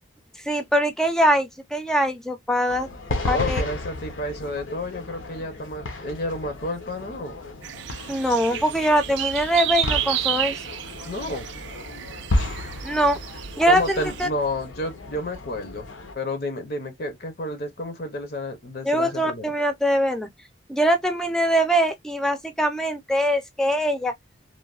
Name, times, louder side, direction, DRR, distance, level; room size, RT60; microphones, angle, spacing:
voice 1, 0.5-2.9 3.3-3.6 8.1-10.6 12.8-13.2 13.6-14.3 18.8-20.3 20.7-24.1, equal, 5° left, 0.4 m, -22 dB
sound 1, 2.7-16.1, left 2 dB, 90° left, 0.7 m, -33 dB
voice 2, 3.3-7.4 11.0-11.5 13.7-15.9 16.1-19.5, left 1 dB, 50° left, 0.6 m, -30 dB
sound 2, 7.6-14.3, right 11 dB, 70° right, 0.3 m, -31 dB
3.1 x 2.2 x 2.3 m
head